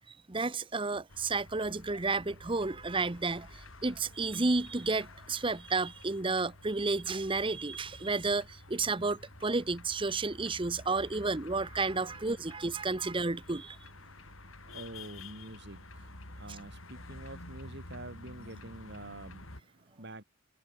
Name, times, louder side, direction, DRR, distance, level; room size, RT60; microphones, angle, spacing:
voice 1, 0.1-13.8, right 3 dB, 25° right, 0.9 m, -32 dB
sound 1, 1.1-19.6, left 2 dB, 75° left, 7.8 m, -50 dB
voice 2, 14.0-20.2, right 1 dB, 55° right, 4.4 m, -47 dB
head